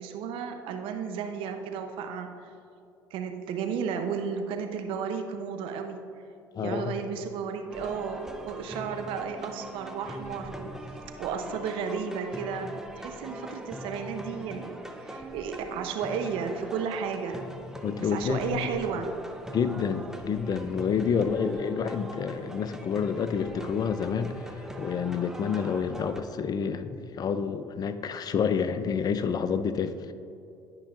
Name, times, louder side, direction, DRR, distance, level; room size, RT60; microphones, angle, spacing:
voice 1, 0.0-2.4 3.1-6.0 6.6-10.8 11.2-12.7 13.0-17.4 18.0-19.1 20.9-21.3, right 6 dB, 65° right, 5 dB, 0.7 m, -33 dB
voice 2, 6.6-6.9 17.8-18.7 19.5-30.1, left 6 dB, 45° left, 11 dB, 0.5 m, -29 dB
sound 1, 7.7-26.2, right 1 dB, 5° right, 0.8 m, -42 dB
11.5 x 5.6 x 2.5 m, 2.6 s
hypercardioid pair, 65°, 9 cm